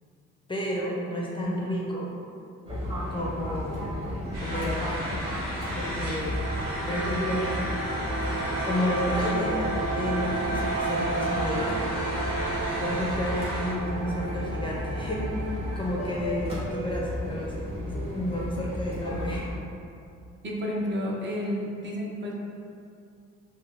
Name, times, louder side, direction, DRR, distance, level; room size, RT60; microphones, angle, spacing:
voice 1, 0.5-2.1 3.1-3.9 4.4-5.2 5.8-6.4 6.9-7.4 8.6-11.8 12.8-19.5, equal, 15° left, -4 dB, 0.4 m, -31 dB
Fixed-wing aircraft airplane, 2.7-19.5, left 1 dB, 20° right, 1.0 m, -34 dB
sound 1, 4.3-13.7, equal, 60° right, 1.4 m, -35 dB
sound 2, 5.1-16.0, right 3 dB, 80° right, 0.5 m, -33 dB
voice 2, 20.4-22.3, equal, 40° right, -3 dB, 0.5 m, -31 dB
3.7 x 2.1 x 2.4 m, 2.5 s
cardioid pair, 90°, 30 cm